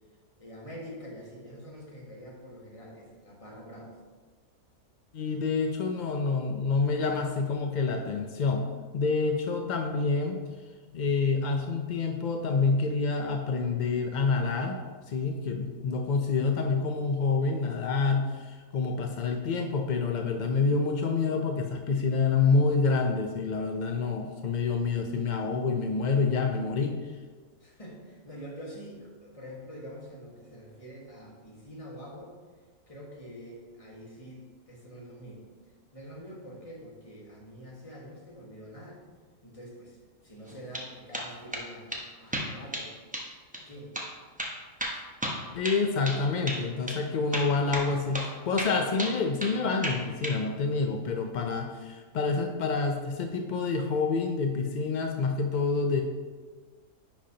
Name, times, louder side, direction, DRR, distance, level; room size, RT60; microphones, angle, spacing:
voice 1, 0.4-3.9 27.6-32.3 32.9-35.4 35.9-39.0 39.4-40.0 40.2-41.9 42.2-42.9 43.5-43.9 44.9-45.1, equal, 25° left, -3 dB, 1.5 m, -45 dB
voice 2, 5.1-8.6 8.9-10.4 10.9-14.8 15.1-27.0 45.5-56.0, left 4 dB, 70° left, 3 dB, 0.4 m, -27 dB
sound 1, 40.5-40.9 41.1-41.6 41.9-42.0 42.3-42.9 43.1-43.3 43.5-43.6 43.9-44.1 44.4-46.2 46.5-46.6 46.9-47.0 47.3-47.9 48.1-48.3 48.6-49.6 49.8-50.4, equal, 10° right, 0.6 m, -33 dB
10.0 x 5.3 x 2.8 m, 1.4 s
omnidirectional pair, 1.5 m